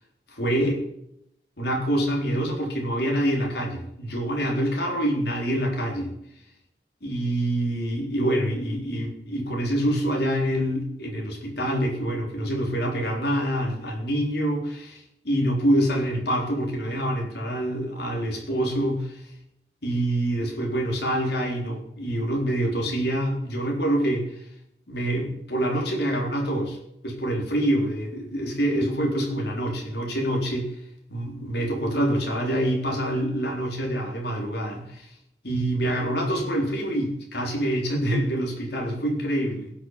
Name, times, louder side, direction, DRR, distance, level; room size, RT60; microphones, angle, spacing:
voice 1, 0.3-0.8 1.6-6.1 7.0-19.2 19.8-24.3 24.9-26.8 27.0-30.7 31.1-35.1 35.4-39.7, right 1 dB, 75° left, 1 dB, 3.7 m, -26 dB
17.5 x 6.6 x 5.6 m, 0.76 s
head